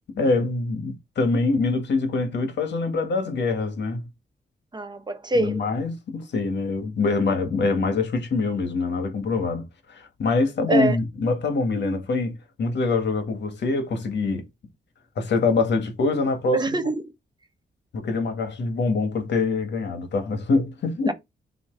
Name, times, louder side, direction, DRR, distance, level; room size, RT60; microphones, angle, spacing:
voice 1, 0.2-4.1 5.4-9.6 9.9-14.4 15.2-16.8 17.9-21.1, left 3 dB, 80° left, 1.7 m, -24 dB
voice 2, 4.7-5.6 10.7-11.0 16.5-17.0 21.1-21.2, right 2 dB, 25° right, 1.0 m, -24 dB
7.1 x 3.1 x 4.6 m
wide cardioid pair, 110°, 18 cm